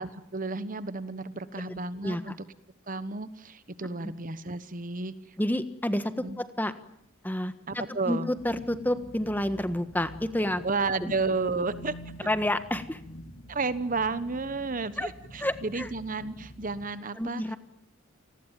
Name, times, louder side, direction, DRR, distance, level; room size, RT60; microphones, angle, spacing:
voice 1, 0.0-2.3 2.9-5.1 6.2-6.4 7.7-8.3 10.6-12.0 13.5-17.4, right 3 dB, 40° right, 14 dB, 1.2 m, -32 dB
voice 2, 2.0-2.3 4.0-4.1 5.4-6.7 7.2-10.6 11.0-11.1 12.2-13.0 15.0-15.1 15.4-15.9 17.2-17.6, left 1 dB, 10° left, 11 dB, 1.4 m, -29 dB
sound 1, 8.3-16.9, equal, 80° left, 3.6 m, -47 dB
29.0 x 20.0 x 9.2 m, 0.72 s
head